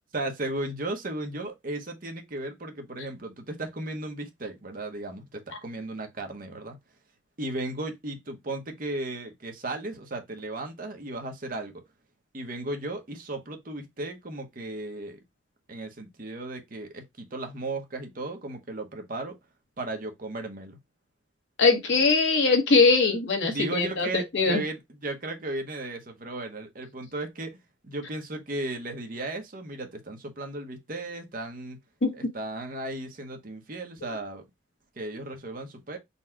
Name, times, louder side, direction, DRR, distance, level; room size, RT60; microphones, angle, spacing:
voice 1, 0.1-6.8 7.4-11.7 12.3-15.2 15.7-19.4 19.8-20.8 23.4-31.8 32.1-34.4 35.0-36.0, right 2 dB, 45° right, 1.0 m, -35 dB
voice 2, 21.6-24.6 32.0-32.1, left 4 dB, 70° left, 1.3 m, -21 dB
4.1 x 2.3 x 4.4 m
head